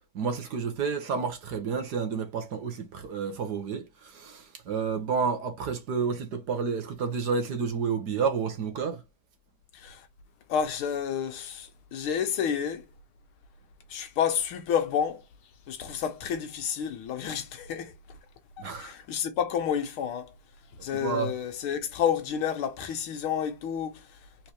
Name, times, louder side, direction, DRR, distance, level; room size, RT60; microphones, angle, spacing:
voice 1, 0.1-9.0 18.6-18.9 21.0-21.4, right 5 dB, 55° right, 1.4 m, -30 dB
voice 2, 9.7-10.1 10.5-12.9 13.9-15.2 15.7-17.9 18.8-20.3 20.8-24.1, left 8 dB, 85° left, 1.8 m, -30 dB
4.4 x 3.8 x 2.9 m
omnidirectional pair, 2.3 m